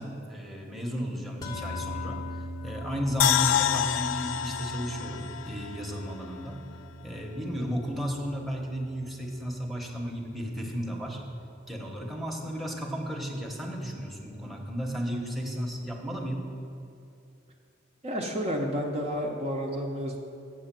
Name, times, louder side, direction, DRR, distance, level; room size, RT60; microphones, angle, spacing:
voice 1, 0.0-2.2 2.6-6.6 7.0-11.2 11.7-16.4, equal, ahead, 0 dB, 1.0 m, -34 dB
sound 1, 1.4-11.9, left 1 dB, 20° left, 0.8 m, -42 dB
sound 2, 3.2-6.4 6.7-6.8, left 10 dB, 80° left, 0.3 m, -28 dB
voice 2, 18.0-20.2, equal, 35° right, 0 dB, 0.8 m, -30 dB
7.7 x 6.2 x 7.5 m, 2.6 s
head